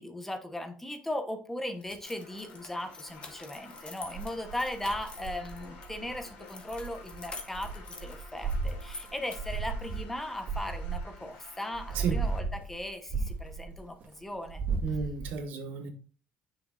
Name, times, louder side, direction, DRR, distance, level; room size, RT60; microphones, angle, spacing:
voice 1, 0.0-7.7 8.0-14.6, left 1 dB, 10° left, 6 dB, 1.1 m, -38 dB
sound 1, 1.8-5.9 6.4-9.6, left 3 dB, 35° left, 1.4 m, -47 dB
sound 2, 2.0-12.4, left 4 dB, 85° left, 3.1 m, -52 dB
sound 3, 4.0-6.3 6.7-11.3 11.7-14.0 14.4-15.3, right 4 dB, 65° right, 2.0 m, -35 dB
voice 2, 14.8-15.9, right 6 dB, 80° right, 5 dB, 1.4 m, -32 dB
7.8 x 6.6 x 2.6 m, 0.40 s
cardioid pair, 115°, 3 cm